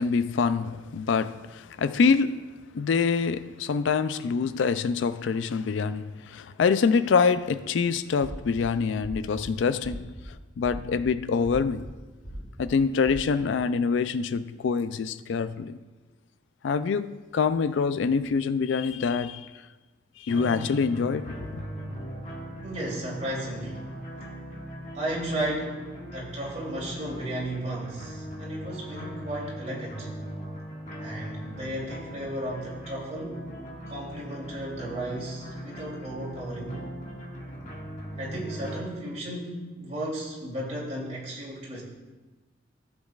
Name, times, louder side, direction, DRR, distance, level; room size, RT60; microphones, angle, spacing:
voice 1, 0.0-2.4 2.7-10.1 10.6-11.9 12.6-15.8 16.6-19.5 20.2-21.6, left 5 dB, 75° left, 0.4 m, -25 dB
sound 1, 8.2-8.6 9.0-9.4 9.8-10.2 10.6-11.0 11.4-11.9 12.2-12.7 13.0-13.2, equal, 5° left, 3.0 m, -39 dB
sound 2, 20.3-38.8, equal, 40° left, 1.7 m, -39 dB
voice 2, 22.6-23.9 24.9-25.8 26.1-30.1 31.0-33.4 33.9-36.8 38.2-41.8, right 1 dB, 35° right, 2.9 m, -34 dB
14.5 x 7.4 x 2.4 m
head